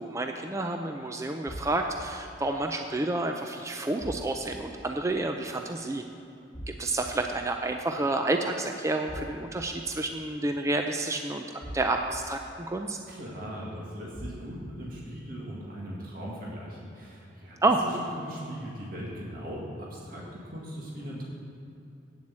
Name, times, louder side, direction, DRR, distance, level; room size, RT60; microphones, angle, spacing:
voice 1, 0.0-6.0 6.8-11.4 11.7-12.4 12.7-13.0 17.6-17.8, right 2 dB, 15° right, 4 dB, 0.4 m, -29 dB
sound 1, 1.5-2.0 4.0-4.6 6.5-7.1 9.1-9.7 11.6-12.2 14.1-14.7, equal, 40° left, 1.4 m, -40 dB
voice 2, 13.1-17.6 18.2-21.2, equal, 55° right, -4 dB, 1.9 m, -39 dB
9.1 x 7.4 x 7.4 m, 2.7 s
head